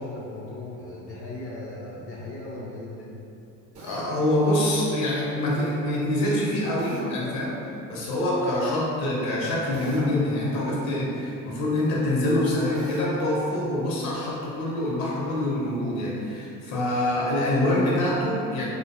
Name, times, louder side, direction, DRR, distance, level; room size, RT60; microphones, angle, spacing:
voice 1, 0.0-3.2, left 2 dB, 35° left, -5 dB, 0.4 m, -37 dB
Drill, 3.7-4.1 6.8-7.1 9.7-10.2 12.7-13.1, right 1 dB, 55° right, 0.7 m, -40 dB
voice 2, 3.8-7.6 7.9-18.6, left 1 dB, 65° left, -5 dB, 0.7 m, -25 dB
2.4 x 2.2 x 2.3 m, 2.7 s
hypercardioid pair, 65°, 45 cm